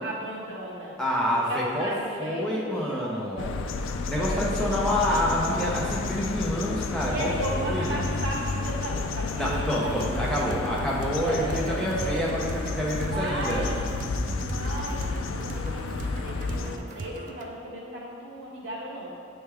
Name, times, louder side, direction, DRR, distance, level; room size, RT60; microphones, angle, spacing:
voice 1, 0.0-3.6 4.2-4.8 5.3-6.0 7.0-10.0 11.2-12.3 12.9-14.1 14.3-19.1, right 1 dB, 75° right, -5 dB, 1.4 m, -35 dB
voice 2, 1.0-1.9 2.2-3.4 4.1-8.1 9.4-13.7, equal, 5° left, -6 dB, 0.8 m, -28 dB
sound 1, 3.4-16.8, left 4 dB, 90° left, 0.4 m, -31 dB
sound 2, 9.5-17.5, right 2 dB, 40° right, 0.4 m, -39 dB
8.5 x 3.4 x 3.5 m, 2.4 s
head